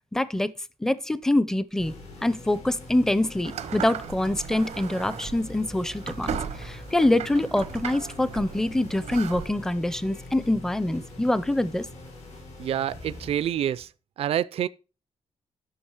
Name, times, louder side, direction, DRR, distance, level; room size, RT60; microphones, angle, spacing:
voice 1, 0.1-0.5 0.8-1.9 2.2-11.9, left 1 dB, 5° left, 0.5 m, -25 dB
sound 1, 1.8-13.8, left 2 dB, 85° left, 4.8 m, -43 dB
sound 2, 3.4-9.5, right 9 dB, 85° right, 0.8 m, -37 dB
voice 2, 12.6-13.9 14.2-14.7, right 10 dB, 60° right, 0.4 m, -27 dB
11.0 x 6.1 x 4.8 m
wide cardioid pair, 155°, 11 cm